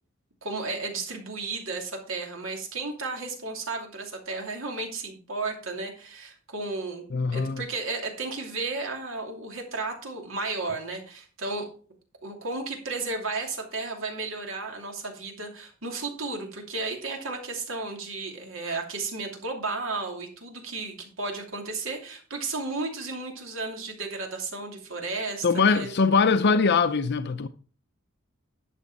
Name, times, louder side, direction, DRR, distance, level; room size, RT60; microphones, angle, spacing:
voice 1, 0.4-7.1 7.3-11.7 12.2-25.9, right 3 dB, 70° right, 2.7 m, -33 dB
voice 2, 7.1-7.6 25.4-27.5, left 5 dB, 55° left, 0.6 m, -22 dB
11.0 x 6.4 x 4.8 m
head